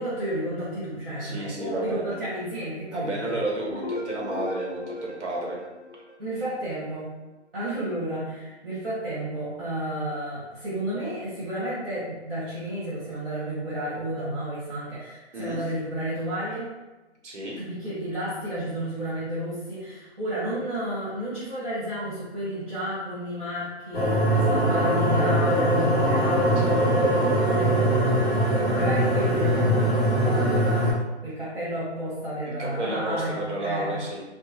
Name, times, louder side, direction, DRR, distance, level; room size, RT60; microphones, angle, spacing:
voice 1, 0.0-3.4 6.2-7.1 7.5-16.7 17.6-28.3 28.7-31.0 31.2-34.0, right 1 dB, 55° right, -11 dB, 1.5 m, -32 dB
voice 2, 1.2-2.1 2.9-5.6 15.3-15.6 17.2-17.6 26.6-26.8 32.6-34.2, right 2 dB, 80° right, -2 dB, 1.1 m, -31 dB
sound 1, 3.7-6.6, left 2 dB, 40° left, 0.5 m, -36 dB
sound 2, 23.9-30.9, right 1 dB, 5° right, 0.8 m, -22 dB
2.8 x 2.2 x 2.7 m, 1.1 s
hypercardioid pair, 180°, 35 cm